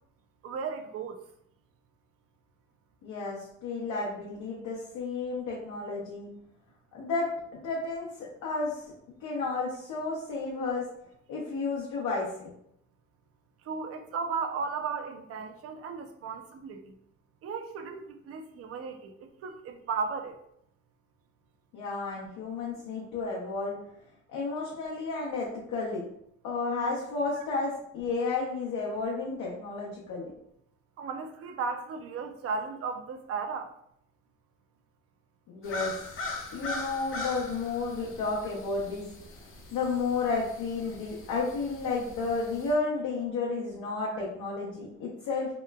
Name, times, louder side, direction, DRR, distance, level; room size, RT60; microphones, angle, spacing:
voice 1, 0.4-1.2 13.7-16.9 17.4-20.4 27.4-27.5 31.0-33.7 44.1-44.2, right 5 dB, 50° right, 6 dB, 0.4 m, -35 dB
voice 2, 3.0-6.3 6.9-7.3 7.5-8.1 8.4-8.8 9.2-10.9 11.3-12.5 21.7-23.8 24.3-26.0 26.4-30.3 35.5-35.9 36.5-39.0 39.7-45.5, left 3 dB, 80° left, -4 dB, 0.7 m, -32 dB
sound 1, 35.6-42.7, left 2 dB, 45° left, 0.6 m, -41 dB
2.9 x 2.1 x 2.2 m, 0.73 s
cardioid pair, 90°, 30 cm